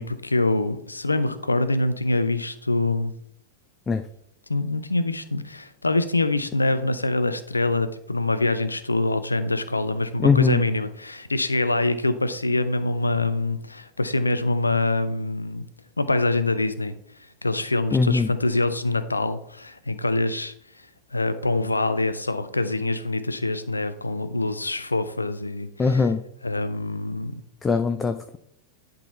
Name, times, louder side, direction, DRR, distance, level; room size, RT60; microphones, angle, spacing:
voice 1, 0.0-3.1 4.5-15.7 16.0-17.0 17.4-20.5 21.1-26.1 26.4-27.4, left 2 dB, 80° left, 12 dB, 0.6 m, -25 dB
voice 2, 10.2-10.6 17.9-18.3 25.8-26.2 27.6-28.4, left 4 dB, 15° left, 8 dB, 0.5 m, -21 dB
10.5 x 3.9 x 4.2 m, 0.71 s
figure-of-eight pair, 90°, 0 cm